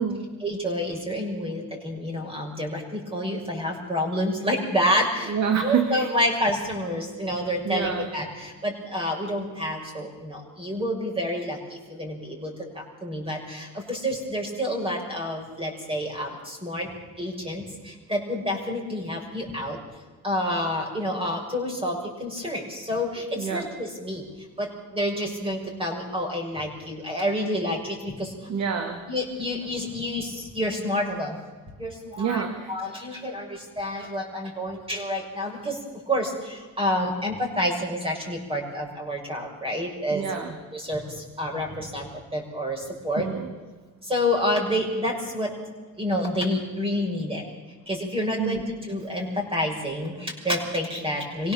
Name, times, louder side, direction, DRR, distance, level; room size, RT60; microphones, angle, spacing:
voice 1, 0.4-16.9 17.2-19.8 20.2-24.3 24.6-28.3 29.1-31.4 31.8-35.8 36.1-40.3 40.7-43.3 44.0-45.5 46.0-47.5 47.9-51.5, equal, 20° right, 0 dB, 6.5 m, -28 dB
voice 2, 5.3-6.1 7.6-8.1 23.4-23.7 28.5-29.1 32.2-32.7 40.1-40.6 43.2-43.5 48.4-48.6, right 6 dB, 65° right, 5 dB, 2.4 m, -27 dB
25.0 x 17.0 x 7.3 m, 1.3 s
cardioid pair, 90°, 30 cm